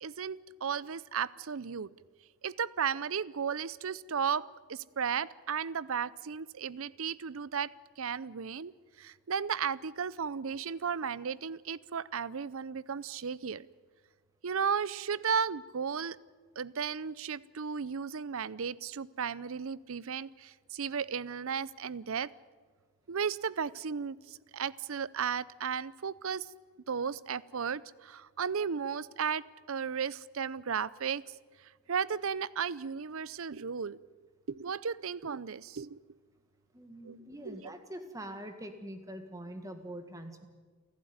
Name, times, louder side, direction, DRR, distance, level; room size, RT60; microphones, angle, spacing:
voice 1, 0.0-1.9 2.4-4.4 4.7-7.7 8.0-8.7 9.0-13.7 14.4-16.2 16.6-22.3 23.1-26.5 26.9-31.2 31.9-34.0 34.5-36.0 37.0-37.2 37.5-37.6, right 6 dB, 70° right, 20 dB, 0.6 m, -34 dB
voice 2, 36.7-40.5, right 1 dB, 15° right, 7 dB, 1.6 m, -44 dB
29.5 x 12.0 x 9.5 m, 1.5 s
head